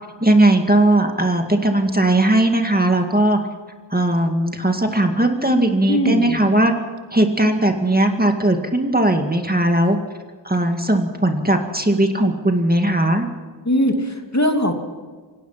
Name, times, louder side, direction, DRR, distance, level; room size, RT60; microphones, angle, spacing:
voice 1, 0.2-3.4 3.9-6.7 7.1-10.0 10.4-13.3, right 1 dB, 20° right, 4 dB, 2.1 m, -18 dB
voice 2, 5.9-6.4 13.7-14.7, equal, 35° left, 4 dB, 2.6 m, -20 dB
27.0 x 18.0 x 5.8 m, 1.5 s
wide cardioid pair, 55°, 45 cm